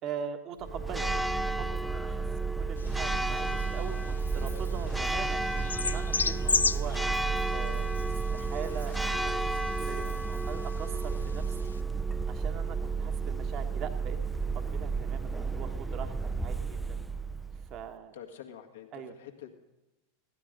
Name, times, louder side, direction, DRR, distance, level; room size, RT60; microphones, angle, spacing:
voice 1, 0.0-7.0 7.5-11.7 12.3-17.0 17.7-18.1 18.9-19.1, right 7 dB, 40° right, 6 dB, 1.4 m, -42 dB
Church bell, 0.6-17.9, right 4 dB, 5° right, 0.6 m, -32 dB
sound 1, 2.8-11.8, left 5 dB, 85° left, 0.4 m, -36 dB
voice 2, 18.1-19.5, left 9 dB, 70° left, 5 dB, 1.8 m, -48 dB
16.0 x 12.0 x 5.2 m, 1.0 s
figure-of-eight pair, 90°, 0 cm